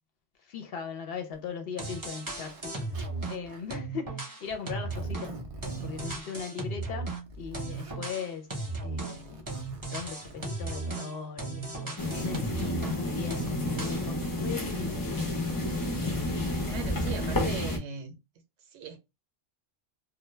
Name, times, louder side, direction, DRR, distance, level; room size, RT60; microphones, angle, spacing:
voice 1, 0.5-2.8 3.3-5.4 5.8-7.1 7.4-8.5 8.8-9.5 9.9-15.1, left 6 dB, 65° left, 0.7 m, -38 dB
Zipper (clothing), 1.3-1.4 2.2-2.6 2.9-3.8 4.5-6.2 6.9-8.0 9.0-10.5, right 2 dB, 50° right, 0.4 m, -45 dB
sound 1, 1.5-1.6 1.8-3.4 3.7-7.2 7.5-13.0 13.3-14.1, right 3 dB, 20° right, 0.7 m, -36 dB
sound 2, 12.0-17.8, left 1 dB, 30° left, 0.3 m, -30 dB
voice 2, 16.6-18.2 18.6-19.0, right 6 dB, 75° right, 0.9 m, -40 dB
2.2 x 2.1 x 3.0 m
omnidirectional pair, 1.2 m